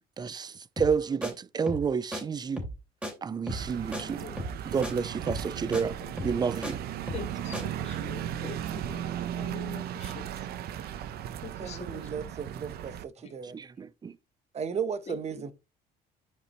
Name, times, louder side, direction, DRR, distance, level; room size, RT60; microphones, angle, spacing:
voice 1, 0.2-2.6 3.2-4.3 4.6-5.9 6.2-6.8 13.4-14.1, right 6 dB, 25° right, 0.4 m, -30 dB
sound 1, 0.8-1.0 1.2-1.3 1.7-2.2 2.6-2.8 3.0-3.1 3.5-3.7 3.9-4.0 4.4-4.6 4.8-4.9 5.3-5.5 5.7-5.8 6.2-6.7 7.1-7.3 7.5-7.6, equal, 5° right, 2.9 m, -35 dB
sound 2, 3.5-13.0, right 10 dB, 70° right, 0.7 m, -36 dB
voice 2, 3.9-4.4 5.6-5.8 7.1-9.1 9.3-10.3 10.9-11.0 11.4-12.3 13.2-13.3 15.1-15.4, left 5 dB, 40° left, 2.8 m, -44 dB
voice 3, 11.6-13.6 14.5-15.5, right 6 dB, 40° right, 0.9 m, -35 dB
11.5 x 5.0 x 3.0 m
cardioid pair, 110°, 17 cm